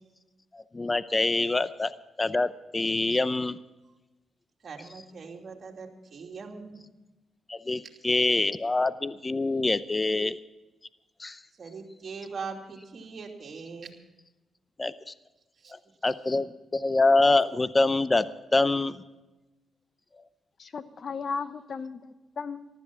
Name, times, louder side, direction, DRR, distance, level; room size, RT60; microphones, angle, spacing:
voice 1, 0.5-1.9 2.2-3.6 7.5-10.4 11.2-11.4 14.8-14.9 16.0-16.5 16.7-18.2 18.5-19.0, left 2 dB, 25° left, 15 dB, 0.6 m, -25 dB
voice 2, 4.6-6.8 11.6-13.9 15.6-15.7 16.0-16.1, right 5 dB, 55° right, 1 dB, 2.7 m, -41 dB
voice 3, 20.6-22.7, left 5 dB, 55° left, 12 dB, 1.0 m, -36 dB
14.5 x 13.0 x 5.9 m, 1.1 s
cardioid pair, 65°, 0 cm